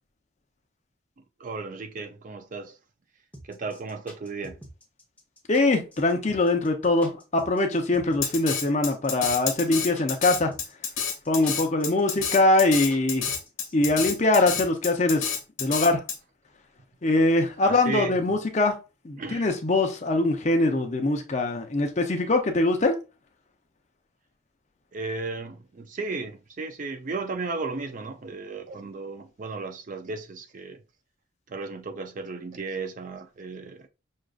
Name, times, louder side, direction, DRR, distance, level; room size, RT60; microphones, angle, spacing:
voice 1, 1.4-2.8 3.5-4.6 17.6-18.1 19.2-19.5 24.9-30.8 31.5-33.9, right 3 dB, 40° right, 0.4 m, -35 dB
sound 1, 3.3-15.0, equal, 5° left, 0.9 m, -46 dB
voice 2, 5.5-10.5 11.3-13.3 13.7-15.3 15.6-16.0 17.0-18.8 19.0-23.0, left 2 dB, 35° left, 0.5 m, -23 dB
Drum kit, 8.2-16.2, left 7 dB, 70° left, 1.2 m, -29 dB
6.3 x 2.4 x 2.4 m
head